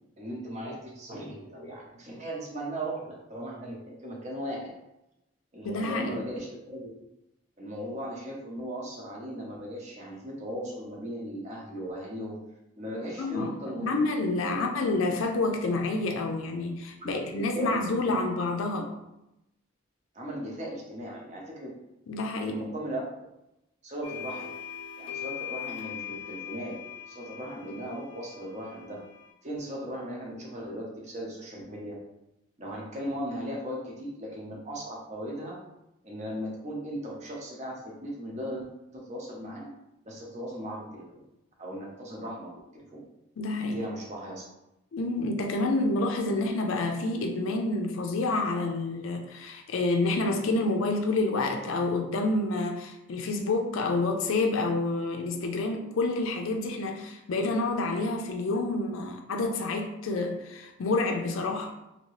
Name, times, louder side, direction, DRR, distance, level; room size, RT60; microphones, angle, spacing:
voice 1, 0.2-4.7 5.5-6.9 7.6-12.4 12.8-14.0 14.5-14.6 17.0-17.2 17.5-18.2 18.7-18.8 20.1-21.7 22.5-23.0 23.8-24.5 25.0-26.7 27.1-29.0 29.4-31.9 32.6-35.6 36.0-39.7 40.0-41.2 41.6-43.0 43.6-44.5, equal, 35° right, -2 dB, 0.7 m, -37 dB
voice 2, 5.6-6.2 13.2-18.9 22.1-22.6 43.4-43.8 44.9-61.7, left 2 dB, 85° left, 3 dB, 0.4 m, -28 dB
sound 1, 24.0-29.3, left 9 dB, 25° left, 0.5 m, -41 dB
2.8 x 2.7 x 3.1 m, 0.90 s
head